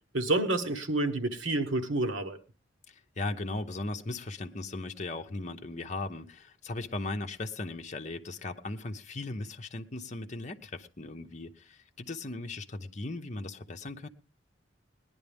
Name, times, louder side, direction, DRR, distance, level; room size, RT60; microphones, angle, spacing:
voice 1, 0.1-2.4, right 2 dB, 85° right, 1.3 m, -29 dB
voice 2, 2.9-14.1, left 2 dB, 40° left, 0.8 m, -38 dB
19.0 x 11.0 x 3.5 m
head